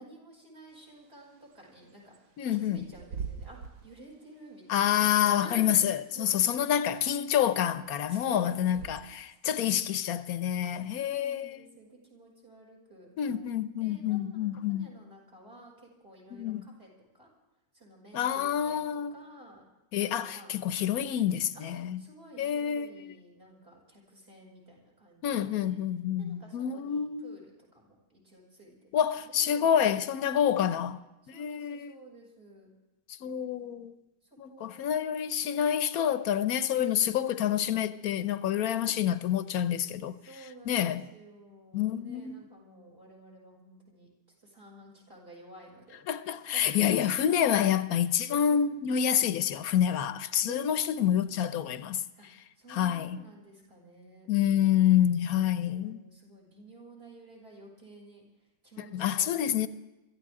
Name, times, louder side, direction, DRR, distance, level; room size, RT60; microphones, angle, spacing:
voice 1, 0.0-6.6 8.0-9.0 10.5-13.4 13.8-17.3 17.7-19.6 20.0-20.6 21.5-21.6 22.0-25.8 26.2-28.9 29.2-29.8 30.3-31.0 31.2-32.7 33.2-33.7 34.5-35.3 37.1-37.8 38.7-39.0 40.3-44.1 44.4-46.0 46.5-47.7 48.4-48.6 49.9-51.0 52.2-52.3 52.6-54.3 55.1-58.2 58.6-59.7, right 1 dB, 40° right, 6.4 m, -52 dB
Bird / Wind, 0.7-9.4, right 6 dB, 65° right, 1.3 m, -46 dB
voice 2, 2.4-2.9 4.7-11.7 13.2-14.9 16.3-16.7 18.1-19.1 19.9-22.0 22.4-23.1 25.2-27.4 28.9-31.0 31.3-31.9 33.1-34.0 34.4-40.2 40.7-41.1 41.7-42.4 46.1-52.0 52.7-53.2 54.3-56.0 58.8-59.7, left 10 dB, 75° left, 1.2 m, -28 dB
24.0 x 15.0 x 3.7 m
omnidirectional pair, 1.6 m